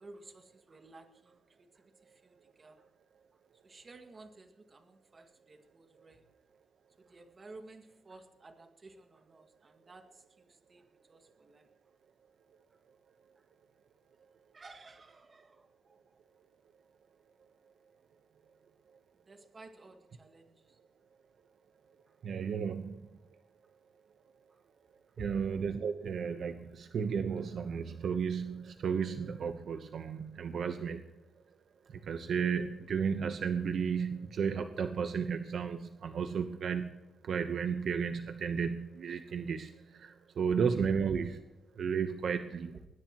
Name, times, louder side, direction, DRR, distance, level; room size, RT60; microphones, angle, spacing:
voice 1, 0.0-2.9 3.3-6.2 7.0-11.7 13.3-13.5 14.5-16.1 19.2-20.8 22.1-22.2 24.5-24.6 25.1-25.3, right 3 dB, 30° right, 5 dB, 2.0 m, -55 dB
voice 2, 22.2-23.1 25.2-31.0 31.9-41.4 41.7-42.8, right 6 dB, 60° right, 7 dB, 1.0 m, -33 dB
21.0 x 20.5 x 3.0 m, 0.95 s
wide cardioid pair, 145°, 0 cm